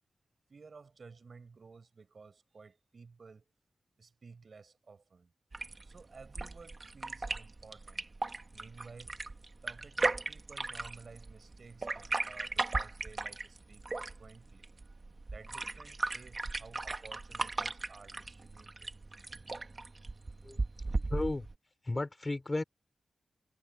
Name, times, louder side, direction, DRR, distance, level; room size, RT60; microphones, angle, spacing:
voice 1, 0.5-3.4 4.0-5.3 5.8-8.1 8.5-9.2 9.6-15.0 15.3-18.9, right 4 dB, 60° right, 5.5 m, -54 dB
sound 1, 5.5-21.5, right 3 dB, 40° right, 1.7 m, -37 dB
voice 2, 21.1-21.4 21.9-22.6, left 2 dB, 30° left, 4.6 m, -33 dB
cardioid pair, 60°, 0 cm